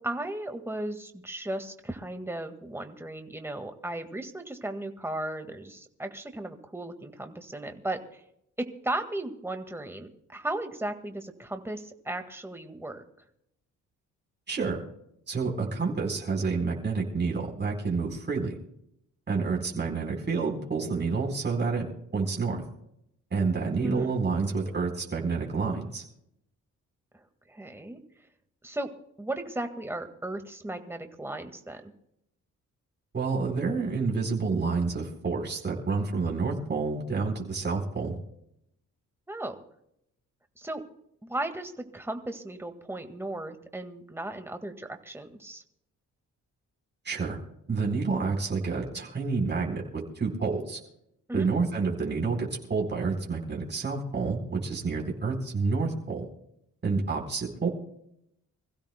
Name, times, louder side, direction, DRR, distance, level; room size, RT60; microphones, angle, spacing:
voice 1, 0.0-8.2 8.6-13.0 23.8-24.1 27.1-28.0 28.6-28.9 29.2-31.8 39.3-39.6 40.6-40.8 41.2-45.6 51.3-51.5, right 1 dB, 10° right, 6 dB, 1.8 m, -36 dB
voice 2, 14.5-14.8 15.3-18.6 19.3-21.9 22.1-22.6 23.3-26.0 33.1-38.2 47.0-47.4 47.7-50.8 51.3-56.2 56.8-57.7, right 4 dB, 35° right, 0 dB, 4.2 m, -29 dB
26.0 x 15.5 x 2.2 m, 0.76 s
cardioid pair, 95°, 30 cm